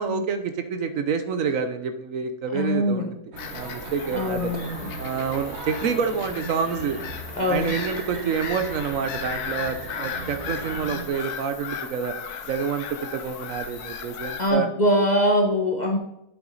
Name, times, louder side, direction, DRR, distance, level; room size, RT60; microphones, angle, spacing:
voice 1, 0.0-3.1 3.5-4.5 5.0-7.0 7.4-12.1 12.5-14.7, right 6 dB, 65° right, 9 dB, 1.0 m, -28 dB
voice 2, 2.5-3.2 4.1-4.9 7.3-7.8 14.4-16.0, equal, 40° left, 2 dB, 0.7 m, -23 dB
sound 1, 3.3-11.1, right 3 dB, 45° right, 1.4 m, -37 dB
Bird vocalization bird call bird song / Gull seagull, 3.4-14.5, left 7 dB, 80° left, 1.3 m, -36 dB
8.6 x 6.0 x 3.9 m, 0.80 s
omnidirectional pair, 1.6 m